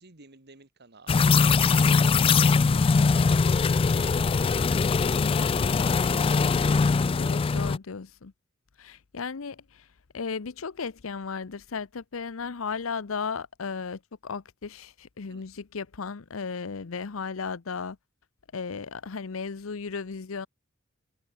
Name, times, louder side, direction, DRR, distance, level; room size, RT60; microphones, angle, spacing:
voice 1, 0.0-4.2 15.3-15.4, right 3 dB, 55° right, 2.5 m, -52 dB
sound 1, 1.1-7.8, left 4 dB, 25° left, 0.3 m, -22 dB
voice 2, 7.2-8.3 8.8-9.9 10.1-18.0 18.5-20.5, left 5 dB, 85° left, 0.7 m, -35 dB
head